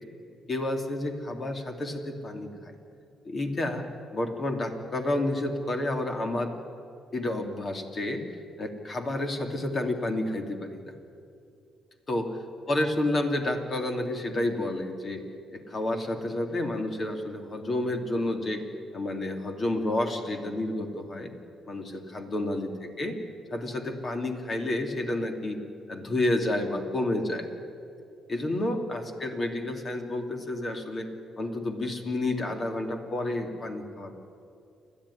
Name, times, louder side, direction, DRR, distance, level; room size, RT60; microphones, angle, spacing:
voice 1, 0.5-2.7 3.2-3.8 4.1-6.5 7.1-8.2 8.6-10.9 12.1-12.3 12.7-15.2 15.5-18.6 18.9-21.3 21.7-23.2 23.5-25.6 25.9-27.5 28.3-31.1 31.4-34.1, left 1 dB, 40° left, 4 dB, 2.8 m, -30 dB
29.0 x 12.0 x 10.0 m, 2.5 s
cardioid pair, 90°, 0 cm